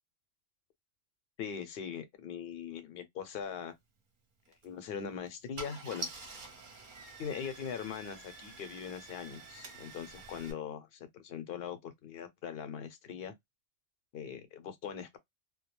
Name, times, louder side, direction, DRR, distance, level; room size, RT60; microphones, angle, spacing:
voice 1, 1.4-3.7 4.6-6.1 7.2-13.3 14.1-15.2, left 7 dB, 60° left, 0.8 m, -41 dB
Car / Engine starting, 4.5-4.7 5.3-5.4 5.6-10.5, right 3 dB, 50° right, 0.8 m, -47 dB
2.3 x 2.2 x 2.9 m
omnidirectional pair, 1.3 m